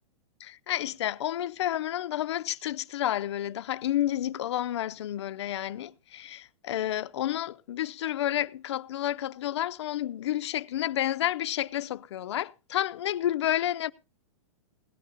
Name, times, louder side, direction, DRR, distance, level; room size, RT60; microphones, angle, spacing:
voice 1, 0.4-13.9, left 12 dB, 55° left, 0.5 m, -30 dB
17.0 x 9.6 x 3.8 m
supercardioid pair, 180°, 17 cm